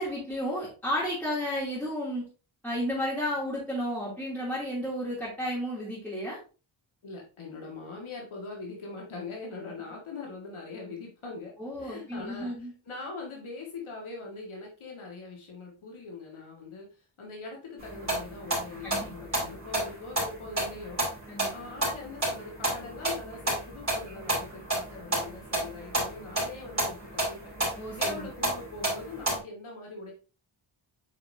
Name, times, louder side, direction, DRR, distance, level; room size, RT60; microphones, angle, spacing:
voice 1, 0.0-2.3 2.6-6.4 11.6-12.7 18.8-19.1 21.3-21.5 27.7-28.3, equal, 5° left, -7 dB, 2.8 m, -32 dB
voice 2, 7.0-21.0 21.5-27.5 27.9-30.1, left 3 dB, 90° left, -1 dB, 1.9 m, -42 dB
sound 1, 17.8-29.4, right 1 dB, 35° right, 3.9 m, -32 dB
7.9 x 4.9 x 2.7 m, 0.34 s
wide cardioid pair, 115°, 47 cm